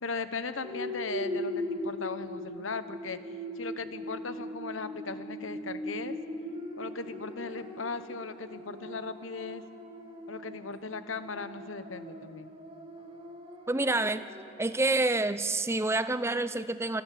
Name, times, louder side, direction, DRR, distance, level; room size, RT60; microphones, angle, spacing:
voice 1, 0.0-3.2 3.6-6.2 6.8-9.6 10.3-12.5, left 4 dB, 85° left, 11 dB, 1.1 m, -38 dB
sound 1, 0.6-14.8, left 1 dB, 30° right, 2.8 m, -40 dB
voice 2, 13.7-14.2 14.6-17.0, right 2 dB, 15° right, 13 dB, 0.6 m, -28 dB
26.0 x 14.0 x 7.7 m, 2.5 s
head